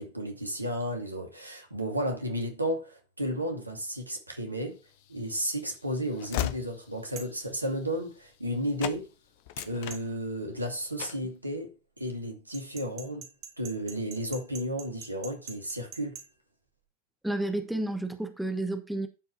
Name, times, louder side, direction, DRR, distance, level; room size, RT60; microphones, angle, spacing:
voice 1, 0.0-4.8 5.1-9.1 9.6-13.3 13.6-16.2, equal, 85° right, 2.3 m, -33 dB
Train / Slam, 4.9-8.5 8.8-9.0 9.4-10.6 11.0-11.3, left 13 dB, 50° left, 0.8 m, -37 dB
sound 1, 7.2-7.4 9.9-10.1 12.5-16.3, right 7 dB, 40° right, 3.1 m, -44 dB
voice 2, 17.2-19.1, right 1 dB, ahead, 1.3 m, -31 dB
11.5 x 5.4 x 4.2 m
figure-of-eight pair, 90°, 0 cm